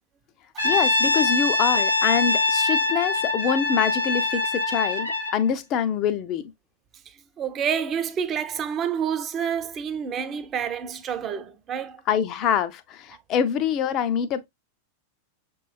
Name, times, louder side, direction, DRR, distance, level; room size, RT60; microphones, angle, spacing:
Brass instrument, 0.6-5.4, left 2 dB, 85° left, 1.1 m, -23 dB
voice 1, 0.6-6.5 12.1-14.5, left 8 dB, 35° left, 0.5 m, -25 dB
voice 2, 7.1-12.0, right 8 dB, 30° right, 0.6 m, -29 dB
5.9 x 3.0 x 2.2 m
figure-of-eight pair, 90°, 0 cm